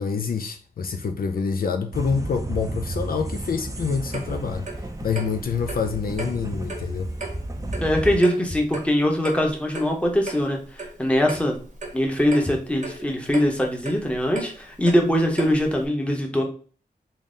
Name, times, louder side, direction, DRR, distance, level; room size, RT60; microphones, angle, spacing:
voice 1, 0.0-7.1, left 5 dB, 65° left, 0.4 m, -27 dB
sound 1, 1.9-8.2, right 1 dB, 20° right, 0.5 m, -32 dB
Clock, 4.1-15.9, right 3 dB, 50° right, 0.9 m, -38 dB
voice 2, 7.8-11.6 11.9-16.4, equal, 5° left, 0.8 m, -22 dB
3.9 x 2.0 x 3.7 m
wide cardioid pair, 100°, 16 cm